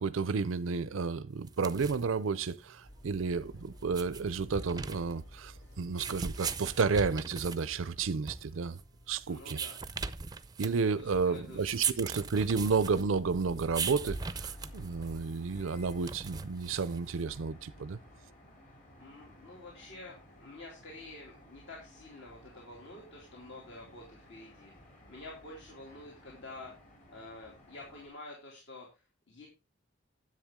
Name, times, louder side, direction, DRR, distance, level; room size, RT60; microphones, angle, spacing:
voice 1, 0.0-8.8 9.1-9.6 10.6-18.0, right 5 dB, 80° right, 0.5 m, -31 dB
sound 1, 1.4-17.3, right 6 dB, 20° right, 0.5 m, -40 dB
sound 2, 2.8-9.6 9.9-10.2 10.5-10.7 11.1-17.9, equal, 85° left, 5.6 m, -52 dB
voice 2, 9.3-9.8 10.9-12.0 19.0-26.7 27.1-29.5, left 2 dB, 60° left, 2.7 m, -49 dB
sound 3, 13.8-28.1, left 1 dB, 40° left, 3.3 m, -57 dB
10.0 x 7.9 x 3.6 m
head